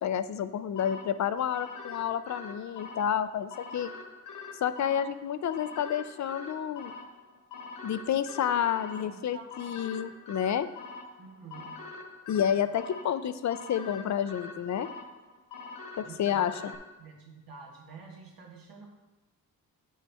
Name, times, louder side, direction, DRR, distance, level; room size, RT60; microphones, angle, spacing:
voice 1, 0.0-3.9 4.6-6.9 7.8-10.7 12.3-14.9 16.0-16.7, left 9 dB, 55° left, 12 dB, 0.5 m, -30 dB
sound 1, 0.8-16.8, left 4 dB, 70° left, 1.4 m, -44 dB
voice 2, 9.0-9.5 11.2-11.8 16.0-16.5 17.0-18.9, right 5 dB, 80° right, 0 dB, 1.6 m, -48 dB
8.7 x 6.2 x 3.4 m, 1.1 s
cardioid pair, 100°, 34 cm